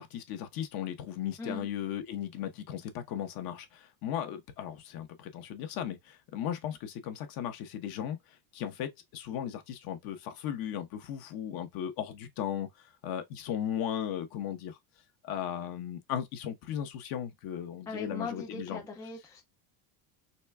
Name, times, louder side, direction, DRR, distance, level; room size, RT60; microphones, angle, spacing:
voice 1, 0.0-8.2 8.5-14.8 15.2-18.8, left 10 dB, 50° left, 1.1 m, -36 dB
voice 2, 17.9-19.4, left 3 dB, 10° left, 0.3 m, -39 dB
4.2 x 3.3 x 2.3 m
cardioid pair, 150°, 44 cm